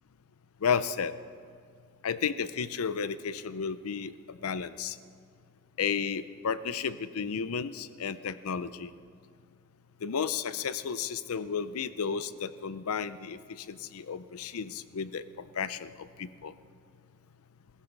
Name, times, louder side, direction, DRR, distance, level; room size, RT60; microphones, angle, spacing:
voice 1, 0.6-1.1 2.0-5.0 5.8-8.9 10.0-16.5, left 6 dB, 80° left, 15 dB, 0.5 m, -33 dB
16.0 x 15.5 x 4.6 m, 2.3 s
head